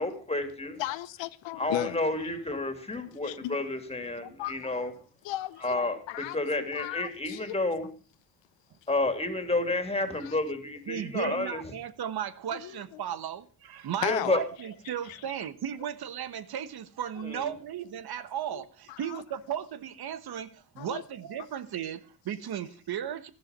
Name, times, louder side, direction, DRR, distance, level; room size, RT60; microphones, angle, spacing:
voice 1, 0.0-0.8 1.6-4.9 5.6-7.9 8.9-11.6 14.0-14.4 17.2-17.5, left 2 dB, 15° left, 3.0 m, -30 dB
voice 2, 0.8-2.0 3.2-3.6 4.2-4.9 5.2-7.4 10.2-10.3 11.3-11.4 12.6-12.7 14.0-14.4 15.1-15.2 18.5-18.6 18.9-19.2 20.8-21.0, left 15 dB, 85° left, 0.9 m, -36 dB
voice 3, 10.9-23.3, right 9 dB, 60° right, 1.2 m, -35 dB
14.0 x 12.0 x 5.3 m
cardioid pair, 100°, 43 cm